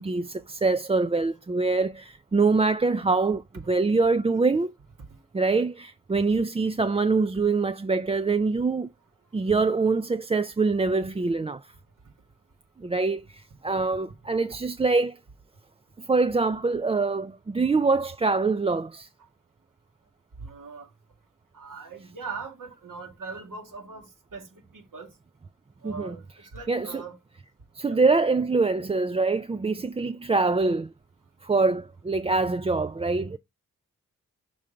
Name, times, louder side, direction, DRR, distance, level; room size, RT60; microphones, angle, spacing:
voice 1, 0.0-4.7 5.3-8.9 9.3-11.7 12.8-15.2 16.0-19.1 25.8-26.1 26.7-27.0 27.7-30.9 31.4-33.4, right 3 dB, 20° right, 0.4 m, -24 dB
voice 2, 20.4-20.9 21.5-25.1 25.8-27.2 27.9-28.0, right 4 dB, 70° right, 2.3 m, -40 dB
6.2 x 3.7 x 5.6 m
cardioid pair, 40°, 33 cm